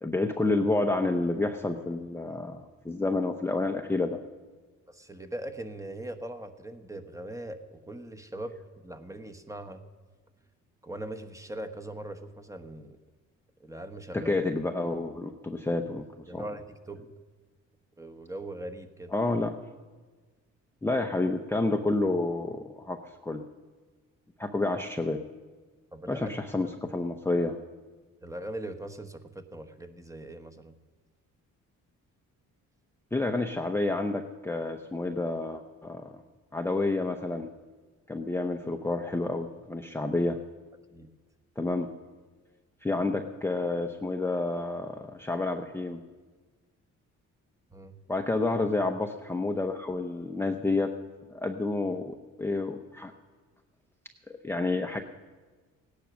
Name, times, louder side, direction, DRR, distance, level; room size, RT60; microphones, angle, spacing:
voice 1, 0.0-4.2 14.1-16.0 16.3-16.4 19.1-19.6 20.8-23.4 24.4-25.2 26.1-27.6 33.1-36.1 36.5-37.5 38.1-40.4 41.6-41.9 42.8-46.0 48.1-50.9 51.3-53.1 54.4-55.0, left 2 dB, 10° left, 4 dB, 0.8 m, -29 dB
voice 2, 4.9-8.6 8.8-9.8 10.8-13.0 13.6-14.4 16.3-17.0 18.0-19.2 25.9-26.3 28.2-30.7 40.9-41.1 47.7-48.0, right 1 dB, 10° right, 6 dB, 1.2 m, -40 dB
16.5 x 10.0 x 6.2 m, 1.4 s
cardioid pair, 90°, 30 cm